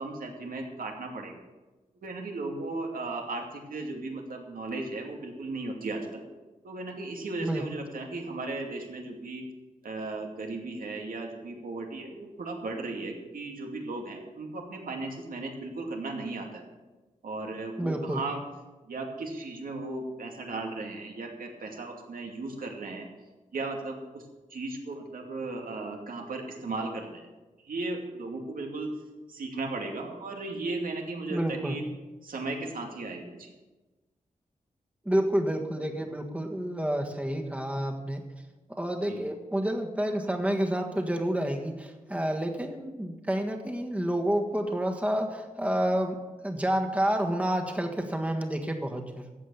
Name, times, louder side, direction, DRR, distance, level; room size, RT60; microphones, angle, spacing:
voice 1, 0.0-1.3 2.0-6.2 6.6-9.4 9.8-16.6 17.2-18.4 18.9-23.1 23.5-24.2 24.5-27.3 27.6-28.9 29.3-31.8 32.2-33.5 39.1-39.2, right 3 dB, 85° right, 1 dB, 2.5 m, -36 dB
voice 2, 17.8-18.2 31.3-31.8 35.0-38.2 38.7-46.2 46.4-49.2, right 1 dB, 10° right, 3 dB, 1.6 m, -29 dB
14.0 x 8.5 x 7.1 m, 1.2 s
wide cardioid pair, 155°, 14 cm